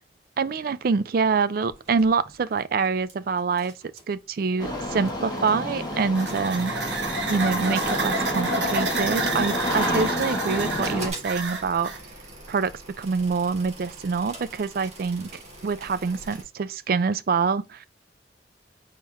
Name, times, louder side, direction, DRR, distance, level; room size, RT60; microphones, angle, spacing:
voice 1, 0.4-3.7 4.1-6.7 7.3-11.9 12.5-15.3 15.6-17.9, right 5 dB, 55° right, 0.4 m, -25 dB
sound 1, 1.7-3.1 3.4-4.1 4.8-4.9 5.1-5.6 6.0-6.6 7.0-8.8 9.3-10.4 10.8-16.4, right 2 dB, 40° right, 1.3 m, -44 dB
Engine starting, 4.6-11.1, left 1 dB, 25° left, 1.5 m, -29 dB
sound 2, 5.8-12.0, right 3 dB, 90° right, 1.1 m, -30 dB
4.2 x 3.7 x 3.4 m
head